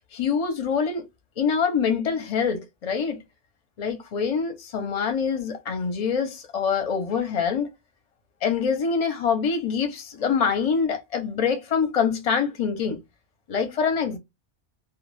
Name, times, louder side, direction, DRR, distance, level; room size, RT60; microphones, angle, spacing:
voice 1, 0.1-1.1 1.4-3.2 3.8-7.7 8.4-13.0 13.5-14.2, left 6 dB, 40° left, 0.6 m, -25 dB
2.3 x 2.2 x 3.2 m
omnidirectional pair, 1.2 m